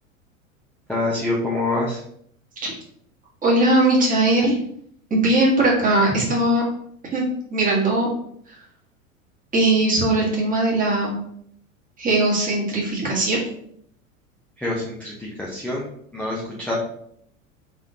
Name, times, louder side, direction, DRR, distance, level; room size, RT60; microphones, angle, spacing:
voice 1, 0.9-2.0 14.6-15.9 16.1-16.7, left 2 dB, 5° left, -6 dB, 0.7 m, -26 dB
voice 2, 3.4-4.5 5.1-6.6 7.1-7.2 7.5-8.1 9.5-11.2 12.0-13.4, right 2 dB, 20° right, -4 dB, 1.5 m, -19 dB
3.6 x 3.5 x 2.8 m, 0.67 s
figure-of-eight pair, 85°, 42 cm